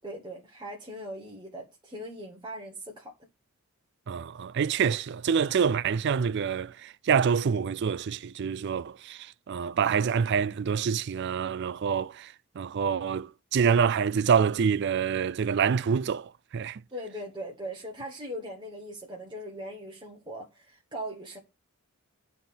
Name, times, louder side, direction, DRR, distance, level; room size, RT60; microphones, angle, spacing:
voice 1, 0.0-3.1 16.9-21.4, equal, 20° right, 1.1 m, -40 dB
voice 2, 4.1-16.8, right 6 dB, 50° right, 0.3 m, -26 dB
9.5 x 3.5 x 5.9 m
head